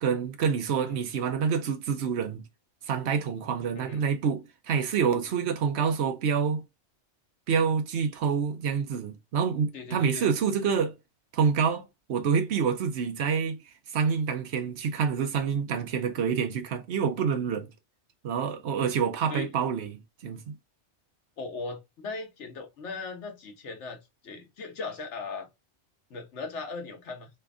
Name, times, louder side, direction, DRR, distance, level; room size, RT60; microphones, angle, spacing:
voice 1, 0.0-2.4 2.9-6.6 7.5-10.9 11.3-11.8 12.1-13.6 13.9-17.7 18.2-20.4, right 6 dB, 70° right, 1.0 m, -27 dB
voice 2, 9.7-10.3 19.3-19.5 21.4-25.5 26.1-27.3, left 3 dB, 80° left, 1.3 m, -38 dB
3.3 x 2.4 x 3.5 m
omnidirectional pair, 1.2 m